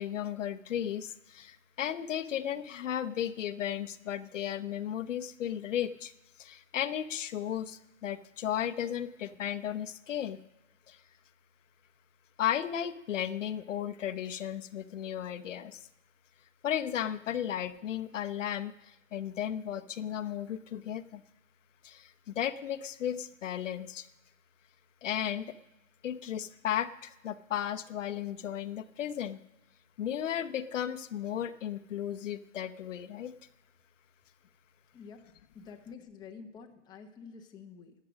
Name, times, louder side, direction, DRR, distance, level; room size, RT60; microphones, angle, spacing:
voice 1, 0.0-6.1 6.4-10.4 10.9-11.0 12.4-15.8 16.6-21.2 21.8-24.1 25.0-25.6 26.0-29.4 30.0-33.3, left 10 dB, 70° left, 11 dB, 0.9 m, -35 dB
voice 2, 34.9-35.2 35.5-37.9, left 5 dB, 10° left, 2 dB, 0.9 m, -49 dB
12.5 x 8.5 x 6.2 m, 0.94 s
hypercardioid pair, 145°, 39 cm